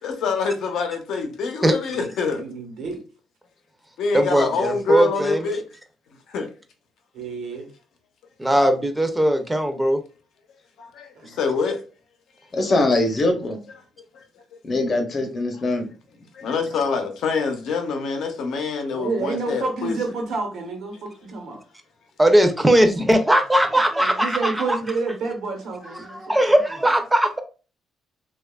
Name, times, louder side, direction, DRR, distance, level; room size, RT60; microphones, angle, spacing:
voice 1, 0.0-2.4 4.0-5.6 6.3-6.5 10.8-11.1 11.4-11.8 16.3-20.0, left 4 dB, 75° left, 0.6 m, -25 dB
voice 2, 2.3-3.0 7.1-7.7 11.1-11.4 16.7-17.1 18.9-21.6 24.0-26.3, right 3 dB, 75° right, 1.0 m, -29 dB
voice 3, 4.1-5.5 8.4-10.0 22.2-24.8 26.1-27.4, right 1 dB, 10° right, 0.5 m, -19 dB
voice 4, 12.5-13.6 14.6-15.9, left 2 dB, 40° left, 0.7 m, -22 dB
2.9 x 2.3 x 2.2 m
cardioid pair, 90°, 0 cm